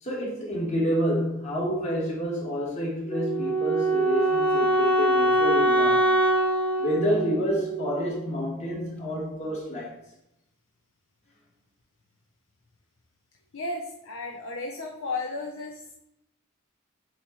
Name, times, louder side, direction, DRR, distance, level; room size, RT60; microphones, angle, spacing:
voice 1, 0.0-6.1 6.8-10.0, equal, 35° left, -4 dB, 2.0 m, -29 dB
Wind instrument woodwind instrument, 3.1-8.1, right 1 dB, 5° left, 0.7 m, -23 dB
voice 2, 13.5-16.0, left 3 dB, 65° left, 1 dB, 0.7 m, -34 dB
8.0 x 3.1 x 4.2 m, 0.81 s
head